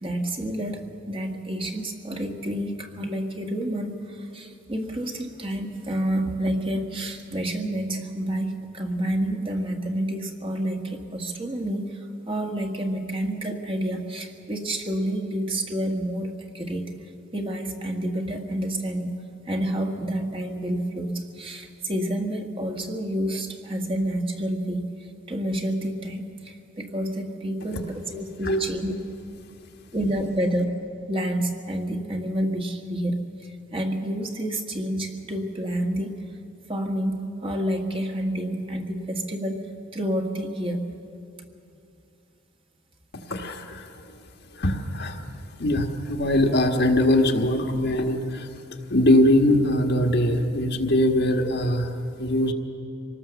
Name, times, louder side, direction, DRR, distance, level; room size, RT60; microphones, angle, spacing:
voice 1, 0.0-16.9 17.3-19.2 19.5-24.9 25.3-28.9 29.9-30.8 31.1-36.2 36.7-39.7 39.9-40.8, right 1 dB, 25° right, 2 dB, 1.7 m, -29 dB
voice 2, 43.3-44.0 44.5-48.5 48.9-52.5, left 1 dB, 55° left, 3 dB, 1.6 m, -22 dB
25.5 x 18.5 x 7.1 m, 2.6 s
head